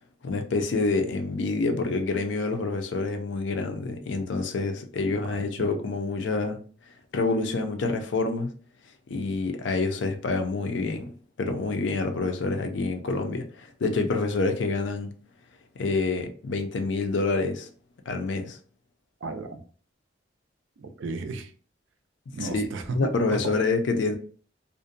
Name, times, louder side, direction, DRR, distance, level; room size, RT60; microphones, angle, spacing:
voice 1, 0.2-6.6 7.1-8.5 9.1-11.1 11.4-15.1 15.8-17.7 18.1-18.6 22.5-22.7 22.9-24.2, left 3 dB, 70° left, 0.4 m, -27 dB
voice 2, 19.2-19.6 20.8-21.5 22.3-23.6, right 3 dB, 80° right, 0.4 m, -34 dB
2.5 x 2.1 x 2.5 m
head